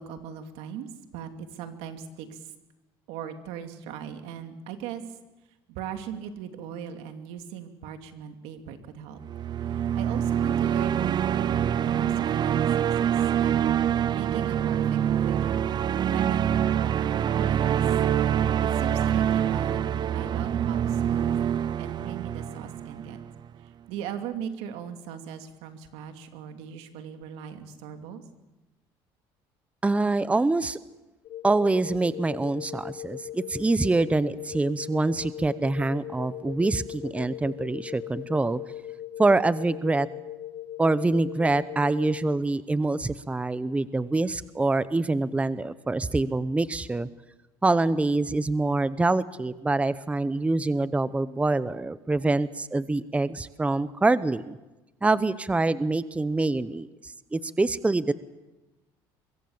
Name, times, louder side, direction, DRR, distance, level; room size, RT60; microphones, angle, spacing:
voice 1, 0.0-2.5 3.1-5.0 5.7-9.2 9.7-13.5 14.1-15.5 16.0-17.8 18.6-19.8 20.1-21.4 21.8-23.2 23.6-28.2, right 8 dB, 85° right, 7 dB, 2.6 m, -39 dB
sound 1, 9.2-23.4, right 9 dB, 45° right, 0.8 m, -25 dB
voice 2, 29.8-30.8 31.4-38.6 39.2-40.1 40.8-47.1 47.6-54.6 55.0-58.1, right 2 dB, 15° right, 16 dB, 0.8 m, -25 dB
sound 2, 31.2-42.4, left 12 dB, 65° left, 1.2 m, -39 dB
24.0 x 23.0 x 7.2 m, 1.0 s
cardioid pair, 100°, 10 cm